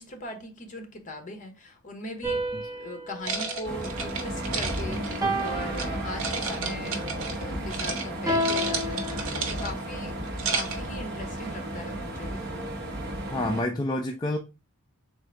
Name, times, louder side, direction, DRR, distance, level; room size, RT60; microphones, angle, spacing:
voice 1, 0.0-2.4 2.7-7.0 7.3-9.1 9.5-10.2 10.5-12.5, left 1 dB, 35° left, 0.9 m, -39 dB
sound 1, 2.2-4.6 5.2-6.7 8.3-9.9, equal, 15° right, 0.7 m, -32 dB
sound 2, 3.2-5.9 6.2-7.4 7.7-8.0 8.3-9.8 10.2-10.9, right 4 dB, 70° right, 0.9 m, -32 dB
sound 3, 3.6-13.6, right 1 dB, 45° right, 1.0 m, -34 dB
voice 2, 4.5-5.1 13.3-14.4, left 1 dB, 20° left, 0.3 m, -30 dB
3.7 x 2.5 x 4.4 m
head